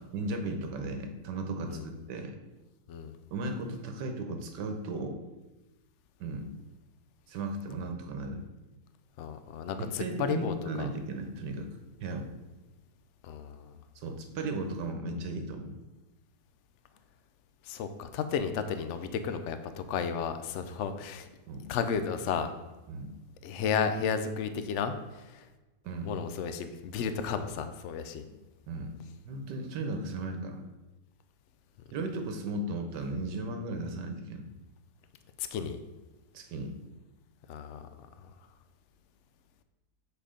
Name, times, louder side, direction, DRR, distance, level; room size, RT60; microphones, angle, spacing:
voice 1, 0.0-2.4 3.3-5.2 6.2-6.5 7.3-8.5 9.8-11.7 12.0-12.3 13.9-15.8 21.5-21.7 22.9-23.1 25.8-26.1 28.7-28.9 29.2-30.6 31.9-34.5 36.3-36.8, right 2 dB, 80° right, 5 dB, 1.5 m, -36 dB
voice 2, 9.2-10.9 13.2-13.7 17.6-21.3 21.7-22.5 23.4-25.5 26.0-28.2 35.4-35.8 37.5-37.9 38.2-38.3, left 6 dB, 85° left, 9 dB, 0.6 m, -33 dB
7.6 x 4.5 x 5.0 m, 1.1 s
omnidirectional pair, 1.8 m